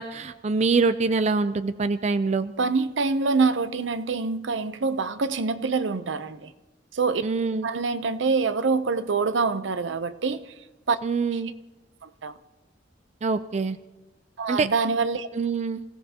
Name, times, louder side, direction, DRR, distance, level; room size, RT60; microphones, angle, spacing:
voice 1, 0.0-2.5 7.2-7.7 11.0-11.5 13.2-13.8 14.5-14.7 15.3-15.8, right 4 dB, 35° right, 0.4 m, -25 dB
voice 2, 2.6-6.5 6.9-7.2 7.6-10.5 10.9-11.0 11.3-11.4 12.0-12.3 14.4-15.3, right 4 dB, 85° right, 0.7 m, -25 dB
26.5 x 16.5 x 2.9 m
head